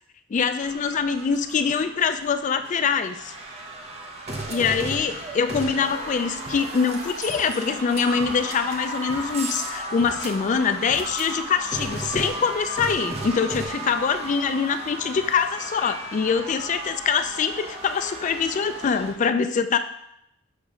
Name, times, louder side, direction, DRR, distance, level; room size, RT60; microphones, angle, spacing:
voice 1, 0.3-3.3 4.5-19.8, left 6 dB, 35° left, 9 dB, 0.3 m, -24 dB
sound 1, 0.6-19.1, right 2 dB, 30° right, 0.8 m, -34 dB
6.4 x 3.0 x 5.0 m, 0.78 s
head